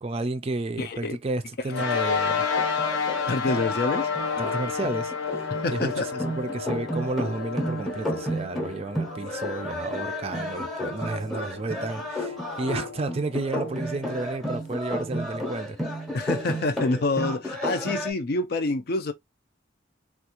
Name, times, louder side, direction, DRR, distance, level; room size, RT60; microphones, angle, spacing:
voice 1, 0.0-2.4 4.4-5.9 6.2-15.8, right 2 dB, 30° right, 0.4 m, -32 dB
voice 2, 0.8-1.2 1.7-1.8 3.3-4.1 5.5-6.1 16.1-19.1, left 2 dB, 55° left, 0.5 m, -27 dB
sound 1, 1.7-14.4, left 6 dB, 80° left, 0.8 m, -31 dB
sound 2, 2.3-18.1, equal, ahead, 0.8 m, -32 dB
3.5 x 2.4 x 2.9 m
head